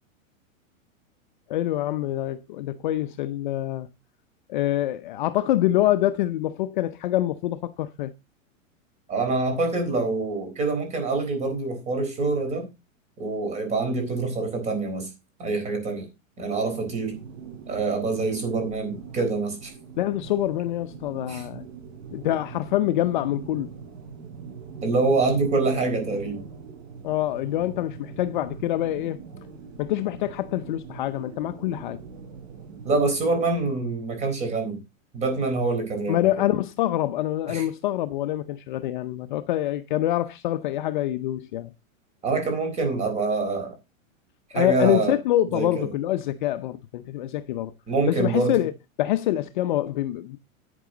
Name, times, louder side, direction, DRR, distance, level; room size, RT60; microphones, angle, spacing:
voice 1, 1.5-3.9 4.5-8.1 20.0-21.6 22.1-23.7 27.0-29.2 29.8-32.0 36.1-41.7 44.5-47.7 48.1-48.7 49.0-50.4, left 14 dB, 40° left, 0.6 m, -25 dB
voice 2, 9.1-12.7 13.2-15.1 15.4-16.1 16.4-17.2 17.7-19.7 21.3-21.4 24.8-26.4 32.8-34.8 35.1-36.2 37.5-37.6 42.2-43.7 44.5-45.2 45.5-45.9 47.9-48.6, right 3 dB, 15° right, 4.0 m, -25 dB
sound 1, 16.8-33.7, right 6 dB, 70° right, 4.8 m, -42 dB
11.0 x 9.4 x 3.8 m
supercardioid pair, 165°, 40 cm